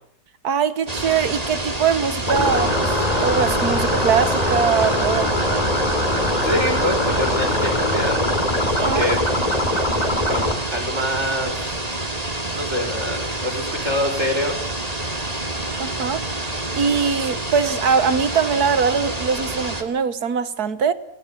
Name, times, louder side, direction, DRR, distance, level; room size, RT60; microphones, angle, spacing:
voice 1, 0.4-3.0 3.2-5.7 8.8-9.0 15.8-20.9, right 6 dB, 70° right, 1.8 m, -22 dB
sound 1, 0.9-19.8, right 2 dB, 25° right, 2.7 m, -28 dB
sound 2, 2.3-10.5, left 1 dB, 25° left, 3.7 m, -22 dB
voice 2, 6.4-8.2 8.8-9.2 10.3-10.5 10.7-11.6 12.5-14.7, left 1 dB, 45° right, 4.8 m, -25 dB
29.0 x 19.5 x 8.6 m
omnidirectional pair, 1.7 m